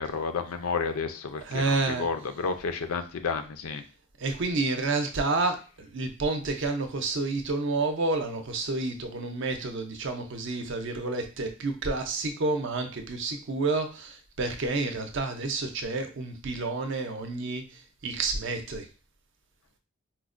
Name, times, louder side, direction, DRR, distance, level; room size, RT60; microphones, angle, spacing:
voice 1, 0.0-3.8, left 5 dB, 85° left, 8 dB, 0.5 m, -31 dB
voice 2, 1.4-2.1 4.2-18.9, right 3 dB, 60° right, 6 dB, 0.5 m, -29 dB
4.4 x 2.1 x 2.4 m, 0.34 s
head